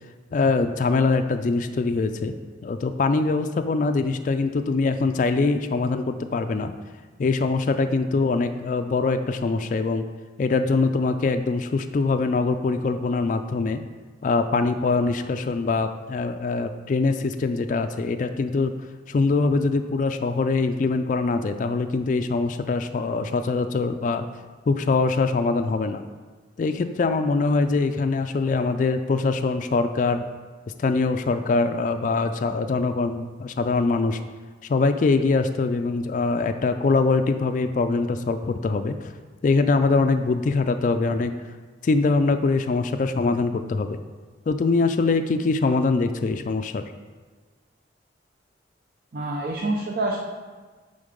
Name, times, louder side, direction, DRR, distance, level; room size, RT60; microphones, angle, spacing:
voice 1, 0.3-2.4 2.6-6.7 7.2-10.0 10.4-13.8 14.2-18.7 19.1-24.2 24.7-26.0 26.6-30.2 30.8-34.2 34.7-39.1 39.4-41.3 41.8-44.0 44.5-46.9, left 3 dB, 45° left, 8 dB, 0.3 m, -23 dB
voice 2, 49.1-50.2, right 2 dB, 55° right, -2 dB, 0.7 m, -26 dB
8.9 x 3.8 x 5.2 m, 1.4 s
head